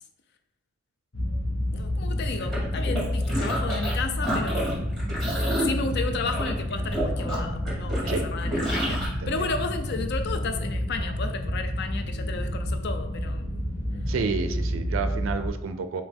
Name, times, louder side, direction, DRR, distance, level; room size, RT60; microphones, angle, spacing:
sound 1, 1.1-15.5, equal, 80° left, 1.1 m, -29 dB
voice 1, 1.7-4.9 5.6-13.5, left 4 dB, 55° left, 0.5 m, -33 dB
sound 2, 2.4-3.9 4.2-9.1, equal, ahead, 1.6 m, -30 dB
voice 2, 8.1-8.4 8.9-9.5 14.1-16.0, right 4 dB, 65° right, 0.4 m, -31 dB
5.0 x 2.8 x 3.5 m
head